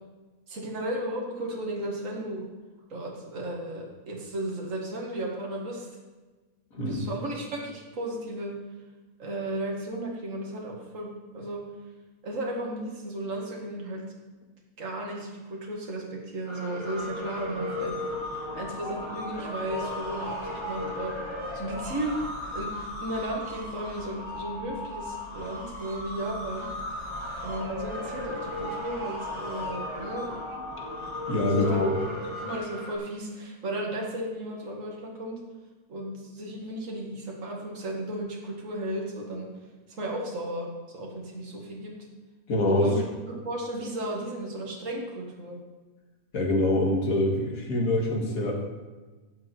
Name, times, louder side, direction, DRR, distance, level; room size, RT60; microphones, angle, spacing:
voice 1, 0.5-2.5 2.9-5.9 6.8-8.5 9.2-11.6 12.2-14.0 14.8-18.0 18.5-21.2 21.5-22.2 22.5-22.7 23.0-26.7 27.4-30.3 31.4-31.8 32.4-35.4 35.9-39.5 40.0-41.9 42.7-43.0 43.4-45.6, right 1 dB, 55° right, -2 dB, 2.2 m, -34 dB
voice 2, 6.7-7.0 31.3-31.9 42.5-42.9 46.3-48.5, left 1 dB, 65° left, 0 dB, 2.4 m, -25 dB
sound 1, 16.5-33.0, left 1 dB, 20° right, 2.0 m, -35 dB
16.0 x 6.2 x 4.5 m, 1.3 s
omnidirectional pair, 1.6 m